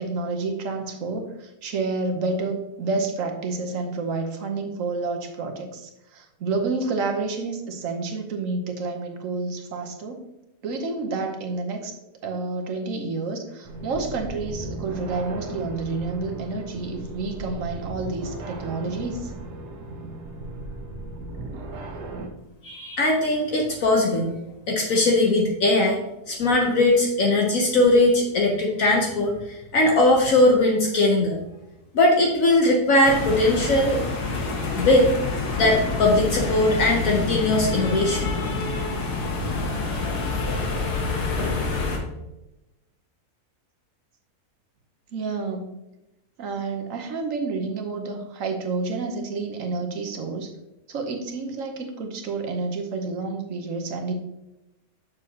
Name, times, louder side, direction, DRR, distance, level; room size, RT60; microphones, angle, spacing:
voice 1, 0.0-10.2 10.6-11.9 12.2-19.3 45.1-45.7 46.4-50.5 50.9-54.1, right 3 dB, 60° right, 4 dB, 1.2 m, -29 dB
sound 1, 13.6-22.3, right 2 dB, 90° right, 1.5 m, -36 dB
voice 2, 22.6-24.3 24.7-26.0 26.3-31.4 31.9-34.0 34.7-35.1 35.6-38.3, left 2 dB, 60° left, 0 dB, 1.2 m, -20 dB
sound 2, 33.0-42.0, left 3 dB, 85° left, 1.7 m, -27 dB
6.8 x 6.7 x 2.8 m, 0.94 s
omnidirectional pair, 1.7 m